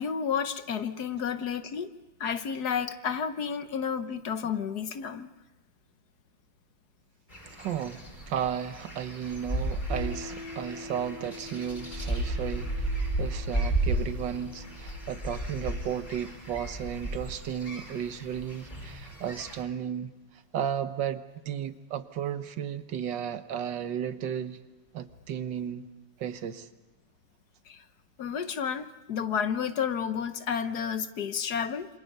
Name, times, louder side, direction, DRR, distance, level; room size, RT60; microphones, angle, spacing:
voice 1, 0.0-1.9 2.2-5.3 27.7-27.8 28.2-31.9, left 7 dB, 60° left, 1.4 m, -31 dB
sound 1, 7.3-19.6, right 1 dB, 20° left, 5.1 m, -34 dB
voice 2, 7.6-12.9 13.2-20.1 20.5-24.6 24.9-25.9 26.2-26.7, right 9 dB, 70° right, 1.7 m, -34 dB
Piano, 9.9-17.1, left 2 dB, 45° right, 2.5 m, -47 dB
28.0 x 26.0 x 5.4 m
omnidirectional pair, 2.1 m